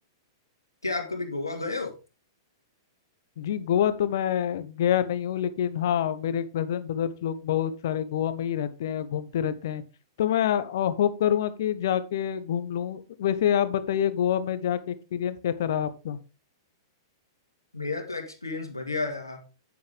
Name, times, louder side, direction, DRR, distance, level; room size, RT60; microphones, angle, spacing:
voice 1, 0.8-1.9 17.7-19.4, left 3 dB, 85° left, 3 dB, 2.1 m, -31 dB
voice 2, 3.4-9.8 10.2-16.2, left 9 dB, 55° left, 13 dB, 0.9 m, -27 dB
8.4 x 7.7 x 3.5 m, 0.31 s
figure-of-eight pair, 105°, 2 cm